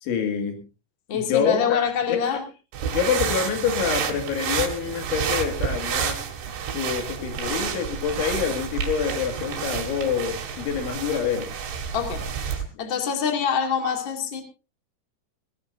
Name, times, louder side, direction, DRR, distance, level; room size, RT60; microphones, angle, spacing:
voice 1, 0.0-0.6 1.1-2.4 2.9-6.2 6.7-11.5, left 7 dB, 85° left, 5 dB, 4.7 m, -26 dB
voice 2, 1.1-2.4 11.9-12.3 12.8-14.4, left 7 dB, 35° left, 4 dB, 2.4 m, -25 dB
sound 1, 2.7-12.6, right 7 dB, 80° right, 4.3 m, -29 dB
19.5 x 17.5 x 2.7 m, 0.30 s
omnidirectional pair, 5.3 m